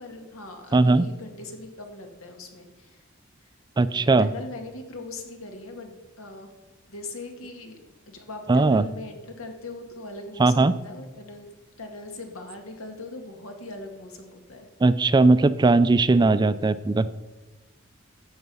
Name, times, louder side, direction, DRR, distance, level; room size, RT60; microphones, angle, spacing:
voice 1, 0.0-3.0 3.8-6.5 6.9-7.8 8.1-11.5 11.8-14.7, left 2 dB, 85° left, 4 dB, 2.0 m, -40 dB
voice 2, 0.7-1.1 3.8-4.3 8.5-8.8 10.4-10.7 14.8-17.1, right 3 dB, 20° right, 15 dB, 0.4 m, -19 dB
14.0 x 8.1 x 5.5 m, 1.1 s
head